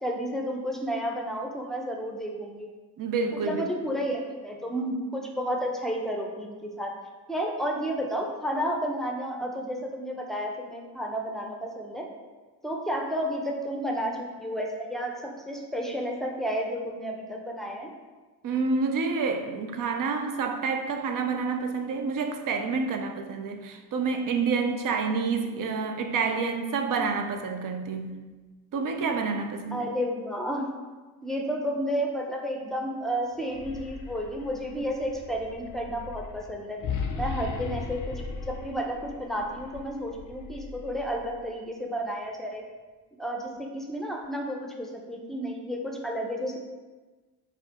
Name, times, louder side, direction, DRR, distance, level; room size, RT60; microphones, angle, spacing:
voice 1, 0.0-2.7 3.3-6.9 7.3-12.1 12.6-17.9 29.7-30.7 31.2-36.8 37.2-42.6 43.2-46.6, equal, ahead, 0 dB, 0.6 m, -31 dB
voice 2, 3.0-3.6 18.4-28.2 28.7-29.9, right 4 dB, 45° right, 5 dB, 0.6 m, -28 dB
sound 1, 33.4-41.5, left 5 dB, 40° left, 0.5 m, -38 dB
4.3 x 2.0 x 3.6 m, 1.3 s
supercardioid pair, 55°, 46 cm